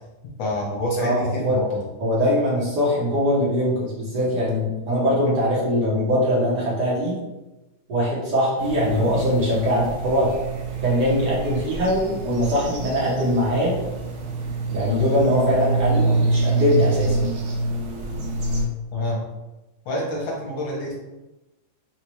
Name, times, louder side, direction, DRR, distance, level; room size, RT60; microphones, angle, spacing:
voice 1, 0.4-1.9 18.9-19.2 19.8-21.0, left 1 dB, 70° left, -3 dB, 1.4 m, -27 dB
voice 2, 1.0-1.6 2.0-7.2 7.9-10.4 10.8-13.7 14.7-17.3, equal, 60° right, -6 dB, 1.2 m, -22 dB
sound 1, 8.6-18.7, right 3 dB, 85° right, 1.6 m, -26 dB
4.1 x 2.3 x 3.0 m, 1.0 s
omnidirectional pair, 2.3 m